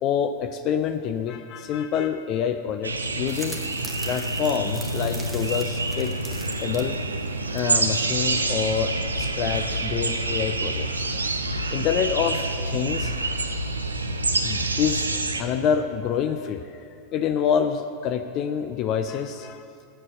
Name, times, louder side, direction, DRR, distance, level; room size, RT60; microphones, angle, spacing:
voice 1, 0.0-3.6 4.1-6.2 6.6-7.0 7.5-11.1 11.7-13.2 14.4-15.1 15.4-16.8 17.1-19.7, left 8 dB, 40° left, 9 dB, 0.4 m, -27 dB
sound 1, 2.8-15.4, right 2 dB, 80° right, 0.5 m, -27 dB
sound 2, 3.3-8.3, right 1 dB, 5° right, 1.0 m, -41 dB
sound 3, 8.1-15.7, left 2 dB, 60° left, 2.1 m, -36 dB
7.9 x 7.4 x 7.6 m, 2.5 s
figure-of-eight pair, 90°, 0 cm